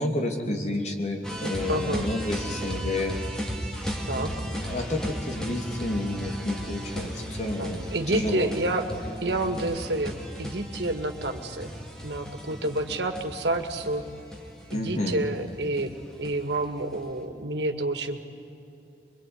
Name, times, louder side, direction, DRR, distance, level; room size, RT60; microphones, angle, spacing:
voice 1, 0.0-3.1 4.0-7.8 8.1-8.5 14.7-15.2, left 1 dB, 40° left, 3 dB, 2.9 m, -30 dB
sound 1, 1.2-17.1, equal, 5° left, 2.4 m, -35 dB
voice 2, 1.7-2.1 4.1-4.3 7.6-8.9 9.2-10.1 10.4-11.7 12.0-14.0 14.7-15.9 16.2-18.2, right 2 dB, 80° right, 6 dB, 2.1 m, -29 dB
23.5 x 23.0 x 9.7 m, 2.7 s
head